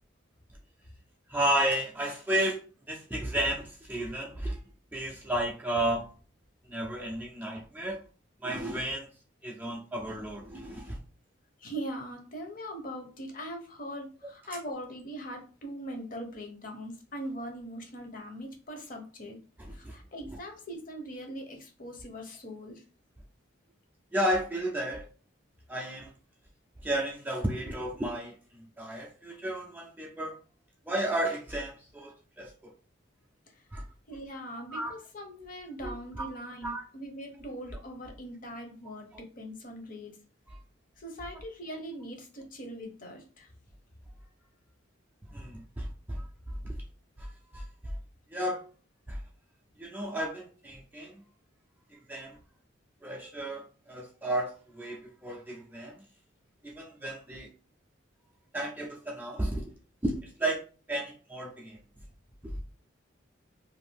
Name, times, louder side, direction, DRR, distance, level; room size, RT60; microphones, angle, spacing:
voice 1, 1.3-4.6 4.9-6.1 6.7-8.0 8.4-9.1 9.4-11.0 19.6-19.9 24.1-25.1 25.7-26.1 26.8-30.4 30.9-32.7 33.7-33.8 34.7-34.9 35.8-36.3 36.6-36.8 40.5-40.6 45.3-46.3 46.6-46.8 47.2-47.9 48.3-48.6 49.1-49.2 49.8-51.2 52.1-52.4 53.0-56.0 56.6-57.5 58.5-59.7 60.0-61.8 62.4-62.5, right 1 dB, 10° right, 0.4 m, -33 dB
voice 2, 11.6-19.4 19.7-22.8 34.1-40.2 41.0-43.5, equal, 45° left, 0.7 m, -41 dB
2.6 x 2.4 x 3.4 m
head